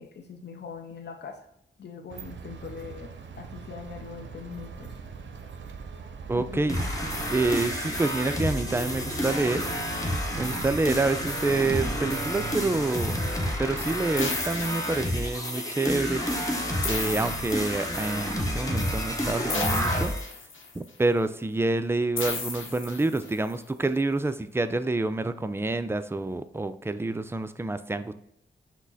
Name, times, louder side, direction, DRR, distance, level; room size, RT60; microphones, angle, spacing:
voice 1, 0.0-1.5 1.8-4.9 6.3-6.8, left 5 dB, 55° left, 3 dB, 0.6 m, -42 dB
sound 1, 2.1-12.8, right 6 dB, 65° right, 0.6 m, -42 dB
voice 2, 6.3-6.8 7.3-9.6 10.3-13.2 13.6-16.2 16.8-20.1 20.7-28.1, right 2 dB, 10° right, 10 dB, 0.4 m, -27 dB
sound 2, 6.7-20.3, equal, 15° left, 1.1 m, -30 dB
sound 3, 14.2-15.5 16.8-18.2 19.5-20.9 22.2-23.5, left 4 dB, 80° left, 1.0 m, -35 dB
6.0 x 2.1 x 4.0 m, 0.73 s
cardioid pair, 45°, 20 cm